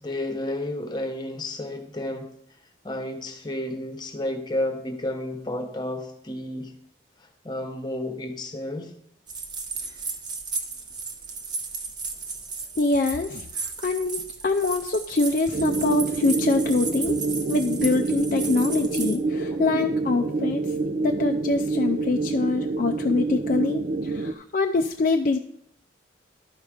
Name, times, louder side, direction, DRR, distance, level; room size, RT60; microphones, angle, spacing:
voice 1, 0.0-2.3 2.8-6.7 7.2-8.9 19.5-19.6, left 1 dB, 25° left, 5 dB, 1.1 m, -31 dB
sound 1, 9.3-19.1, right 4 dB, 25° right, 0.8 m, -34 dB
voice 2, 12.8-17.2 17.5-20.7 21.0-25.4, left 3 dB, 45° left, 5 dB, 0.4 m, -25 dB
sound 2, 15.5-24.3, right 3 dB, 45° right, 0.4 m, -27 dB
12.0 x 4.9 x 5.0 m, 0.70 s
head